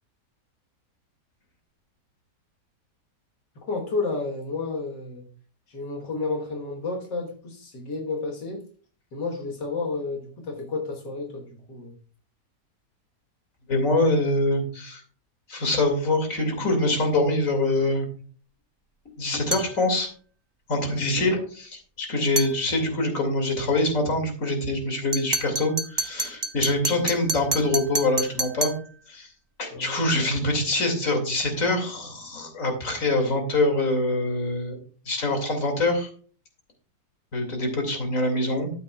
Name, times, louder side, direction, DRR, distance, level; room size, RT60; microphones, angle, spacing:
voice 1, 3.7-5.3 5.7-8.6 9.1-11.9 20.9-21.1 29.7-30.0, left 3 dB, 85° left, 0 dB, 2.1 m, -31 dB
voice 2, 13.7-15.0 15.5-18.1 19.2-20.1 20.7-28.7 29.1-29.3 29.6-34.8 35.1-36.1 37.3-38.7, left 2 dB, 50° left, 4 dB, 2.8 m, -24 dB
sound 1, 19.5-19.8 22.4-22.6 25.1-28.9, right 2 dB, 20° right, 0.7 m, -28 dB
12.5 x 9.5 x 2.3 m, 0.42 s
omnidirectional pair, 1.8 m